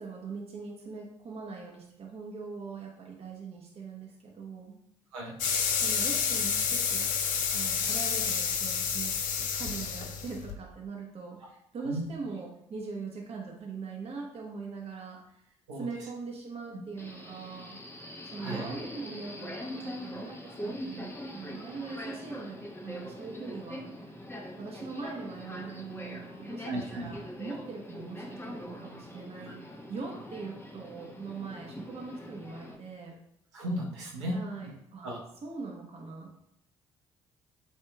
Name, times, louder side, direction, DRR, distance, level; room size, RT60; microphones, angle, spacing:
voice 1, 0.0-4.8 5.7-7.1 7.5-17.8 18.3-24.2 24.6-33.2 34.3-36.4, right 4 dB, 40° right, 0 dB, 1.0 m, -41 dB
sound 1, 5.4-10.5, left 7 dB, 65° left, 0.6 m, -29 dB
Subway metro underground, 17.0-32.8, left 1 dB, 15° left, 0.9 m, -42 dB
voice 2, 26.6-27.1 33.5-34.4 35.0-35.2, right 1 dB, 80° right, -3 dB, 1.0 m, -35 dB
8.2 x 2.8 x 2.2 m, 0.75 s
figure-of-eight pair, 45°, 15 cm